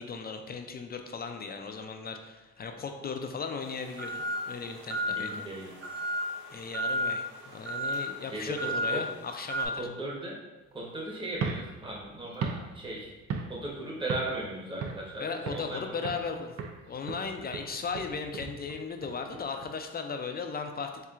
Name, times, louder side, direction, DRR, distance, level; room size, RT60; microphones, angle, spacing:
voice 1, 0.0-5.3 6.5-9.8 15.2-16.6 16.9-21.1, left 5 dB, 35° left, 5 dB, 0.4 m, -37 dB
sound 1, 3.6-9.7, equal, 40° right, 1.4 m, -33 dB
voice 2, 5.1-5.7 8.3-9.0 9.7-10.4 10.7-13.1 13.5-16.1, right 1 dB, 15° right, -3 dB, 1.0 m, -37 dB
sound 2, 11.3-13.8 14.1-14.4 14.8-15.7 16.0-16.3 16.6-19.7, right 5 dB, 55° right, 0.5 m, -37 dB
4.3 x 3.6 x 2.4 m, 1.1 s
cardioid pair, 90°, 30 cm